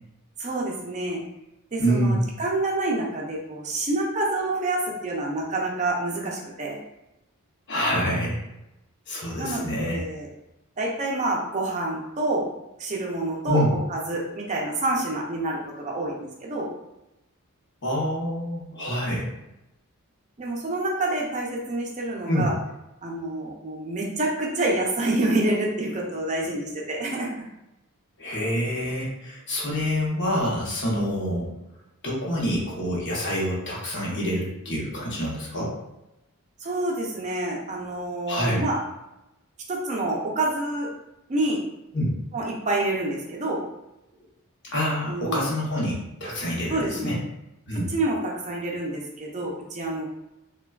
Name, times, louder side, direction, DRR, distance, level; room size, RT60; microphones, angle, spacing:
voice 1, 0.4-1.2 1.7-6.8 9.4-10.3 10.8-12.5 12.8-13.6 13.9-16.7 20.4-22.5 23.0-27.4 36.6-38.8 39.7-40.9 41.3-41.6 42.3-43.6 45.1-45.5 46.7-47.2 47.7-50.0, right 2 dB, 30° right, -1 dB, 0.5 m, -27 dB
voice 2, 1.8-2.2 7.7-8.5 9.1-10.0 13.5-13.7 17.8-19.3 22.3-22.5 28.2-31.5 32.0-35.8 38.3-38.7 41.9-42.1 44.7-47.2 47.7-47.9, equal, 55° left, -4 dB, 0.8 m, -26 dB
3.2 x 2.2 x 2.2 m, 0.92 s
head